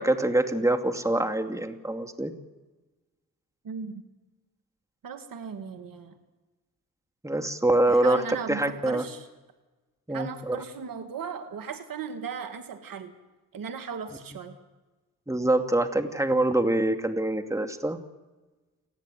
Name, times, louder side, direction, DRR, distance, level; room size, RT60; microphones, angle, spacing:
voice 1, 0.0-2.3 7.2-8.2 8.5-9.0 10.1-10.6 15.3-18.0, right 1 dB, 10° right, 6 dB, 2.5 m, -25 dB
voice 2, 3.6-4.0 5.0-6.2 7.9-9.3 10.1-13.1 13.5-14.6, right 6 dB, 65° right, 7 dB, 2.2 m, -37 dB
29.5 x 10.5 x 9.2 m, 1.2 s
supercardioid pair, 45°, 36 cm